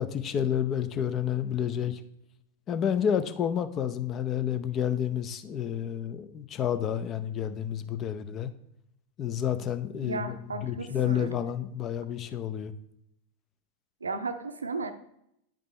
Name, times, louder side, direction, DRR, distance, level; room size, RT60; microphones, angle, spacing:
voice 1, 0.0-2.0 2.7-8.5 9.2-12.7, left 9 dB, 30° left, 11 dB, 0.5 m, -30 dB
voice 2, 10.0-11.3 14.0-14.9, right 3 dB, 75° right, 9 dB, 0.6 m, -34 dB
9.0 x 5.2 x 3.2 m, 0.77 s
figure-of-eight pair, 90°, 0 cm